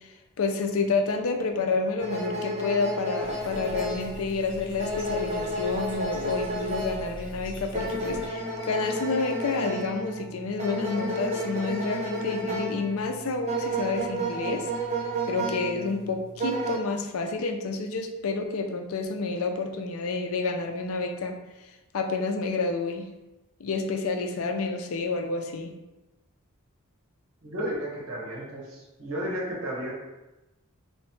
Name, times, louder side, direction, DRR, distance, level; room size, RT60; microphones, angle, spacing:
voice 1, 0.4-14.7 15.3-21.4 21.9-23.1 23.6-25.7, left 3 dB, 70° left, 4 dB, 0.5 m, -29 dB
sound 1, 2.0-16.8, right 1 dB, 30° right, 0.7 m, -32 dB
Bathtub (filling or washing), 3.2-8.3, equal, 20° left, 1.3 m, -43 dB
voice 2, 27.4-29.9, equal, 75° right, -4 dB, 1.3 m, -33 dB
3.1 x 3.1 x 3.1 m, 1.0 s
head